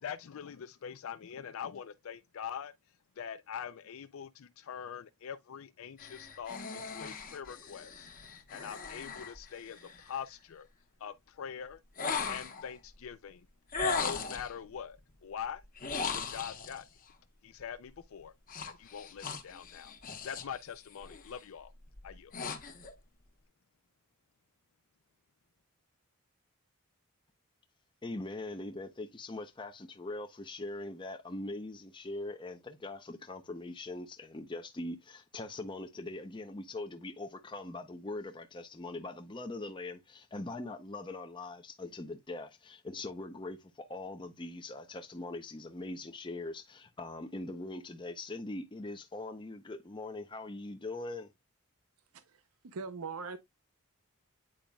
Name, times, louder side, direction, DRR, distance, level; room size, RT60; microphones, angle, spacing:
voice 1, 0.0-10.7 11.0-11.8 12.3-13.5 13.8-15.6 16.1-16.9 17.4-18.3 18.6-21.7 22.0-22.3, left 8 dB, 65° left, 0.4 m, -43 dB
sound 1, 6.0-10.2 12.0-12.7 13.7-14.6 15.8-16.8 18.5-20.6 20.9-21.3 21.9-22.9, left 5 dB, 40° left, 1.0 m, -38 dB
voice 2, 28.0-51.3, left 2 dB, 20° left, 0.6 m, -42 dB
voice 3, 52.1-53.4, right 4 dB, 85° right, 0.6 m, -42 dB
8.7 x 5.0 x 2.2 m
head